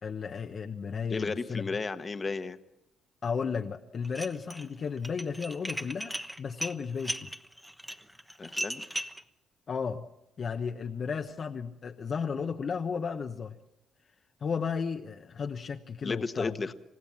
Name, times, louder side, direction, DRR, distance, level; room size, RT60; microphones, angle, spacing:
voice 1, 0.0-1.6 3.2-7.3 9.7-10.1 10.4-13.5 14.4-16.5, left 6 dB, 50° left, 4 dB, 1.1 m, -34 dB
voice 2, 1.1-2.6 8.4-8.8 16.0-16.7, left 4 dB, 30° left, 9 dB, 1.4 m, -33 dB
Dishes pots and pans, 4.0-4.7 5.0-9.2, equal, 5° right, 1.2 m, -36 dB
28.0 x 16.0 x 7.4 m, 0.88 s
cardioid pair, 90°, 0 cm